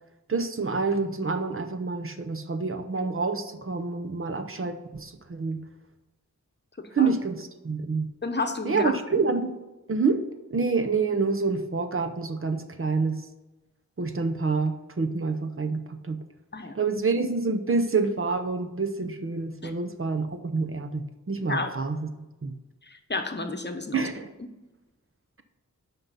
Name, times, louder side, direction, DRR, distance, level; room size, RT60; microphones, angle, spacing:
voice 1, 0.3-5.6 6.9-8.1 8.6-9.5 9.9-10.2 10.5-13.2 14.0-16.2 16.7-22.1 22.4-22.6 23.9-24.3, right 4 dB, 45° right, 8 dB, 0.8 m, -27 dB
voice 2, 8.2-9.2 16.5-16.8 19.6-19.7 21.5-21.7 22.9-24.1, left 3 dB, 35° left, 6 dB, 0.9 m, -31 dB
9.5 x 5.5 x 4.1 m, 1.1 s
wide cardioid pair, 80°, 29 cm